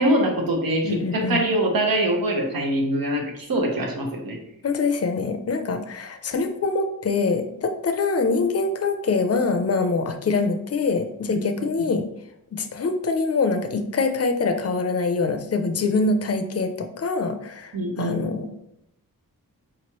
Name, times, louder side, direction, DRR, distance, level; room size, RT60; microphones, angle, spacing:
voice 1, 0.0-4.4 11.3-11.4 17.7-18.5, right 1 dB, 80° right, 0 dB, 1.0 m, -24 dB
voice 2, 0.8-1.5 4.6-12.0 12.5-18.6, left 4 dB, 45° left, 7 dB, 0.5 m, -24 dB
4.8 x 3.0 x 2.9 m, 0.78 s
wide cardioid pair, 140°, 34 cm